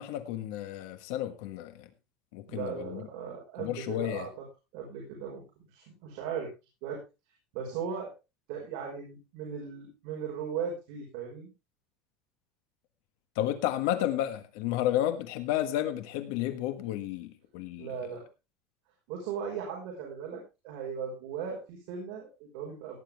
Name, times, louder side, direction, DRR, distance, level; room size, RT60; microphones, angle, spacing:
voice 1, 0.0-1.9 2.3-3.0 3.6-4.3 13.3-18.0, left 12 dB, 60° left, 1.4 m, -32 dB
voice 2, 2.5-4.5 4.7-6.5 6.8-7.0 7.5-8.1 8.5-11.5 17.8-18.3 19.1-23.0, right 7 dB, 55° right, 5.4 m, -38 dB
17.0 x 10.0 x 3.5 m
cardioid pair, 175°, 0 cm